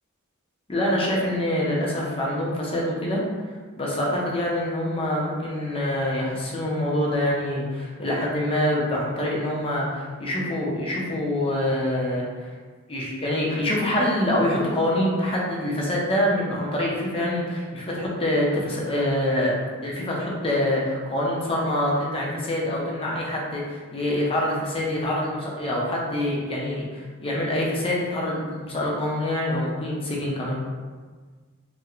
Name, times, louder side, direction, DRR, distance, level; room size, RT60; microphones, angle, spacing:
voice 1, 0.7-3.2 3.8-12.2 12.9-19.6 19.8-30.6, left 1 dB, 25° left, -4 dB, 0.6 m, -25 dB
4.3 x 2.1 x 2.4 m, 1.5 s
head